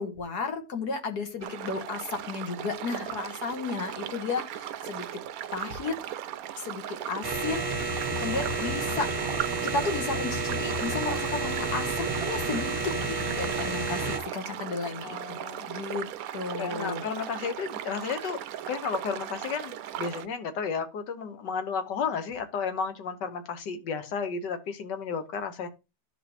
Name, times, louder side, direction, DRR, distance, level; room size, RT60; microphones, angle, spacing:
voice 1, 0.0-5.2 5.5-5.9 6.6-9.1 9.6-15.4 15.7-16.1 16.3-17.0, left 4 dB, 70° left, 5 dB, 1.8 m, -33 dB
sound 1, 1.4-20.3, right 11 dB, 70° right, 0.9 m, -38 dB
sound 2, 7.2-14.2, right 3 dB, 20° right, 0.8 m, -30 dB
voice 2, 15.0-15.7 16.6-18.4 18.7-25.7, left 6 dB, 85° left, 8 dB, 1.7 m, -33 dB
12.5 x 5.0 x 2.9 m, 0.27 s
omnidirectional pair, 1.8 m